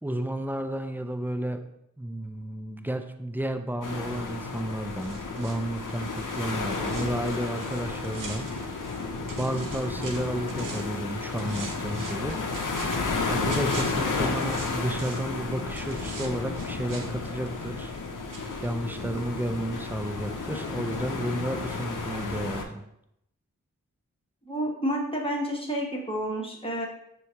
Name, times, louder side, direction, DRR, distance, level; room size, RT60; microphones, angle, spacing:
voice 1, 0.0-1.6 2.0-8.8 9.4-12.4 13.3-17.9 18.3-22.8, right 1 dB, 5° right, 6 dB, 0.4 m, -32 dB
sound 1, 3.8-22.6, left 3 dB, 70° left, 0.6 m, -32 dB
sound 2, 5.0-9.0 9.3-11.0 11.4-15.4 15.7-18.1 18.3-18.4, right 4 dB, 75° right, 0.6 m, -44 dB
voice 2, 24.5-26.9, equal, 15° left, -2 dB, 1.0 m, -30 dB
6.1 x 2.3 x 2.8 m, 0.78 s
cardioid pair, 45°, 32 cm